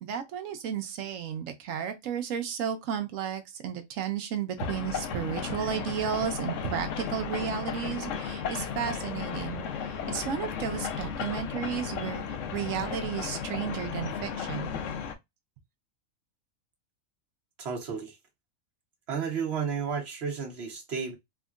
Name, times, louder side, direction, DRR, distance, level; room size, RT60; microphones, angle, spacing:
voice 1, 0.0-12.2 12.5-14.8, right 8 dB, 75° right, 1.0 m, -33 dB
sound 1, 4.6-15.2, left 7 dB, 70° left, 0.9 m, -34 dB
voice 2, 17.6-18.1 19.1-21.2, right 6 dB, 50° right, 1.2 m, -32 dB
3.6 x 2.1 x 2.4 m
omnidirectional pair, 1.4 m